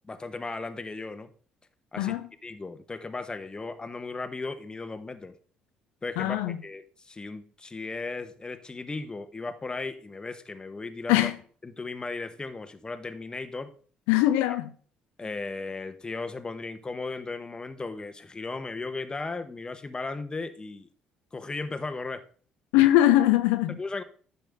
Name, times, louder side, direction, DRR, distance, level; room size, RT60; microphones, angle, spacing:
voice 1, 0.1-1.3 1.9-2.2 2.4-5.3 6.0-11.3 11.6-13.7 14.5-14.6 15.2-20.9 21.3-22.2 23.8-24.0, left 3 dB, 25° left, 1.2 m, -36 dB
voice 2, 2.0-2.3 6.2-6.6 11.1-11.4 14.1-14.7 22.7-23.8, left 14 dB, 80° left, 0.6 m, -21 dB
10.5 x 7.0 x 3.6 m
hypercardioid pair, 60°, 3 cm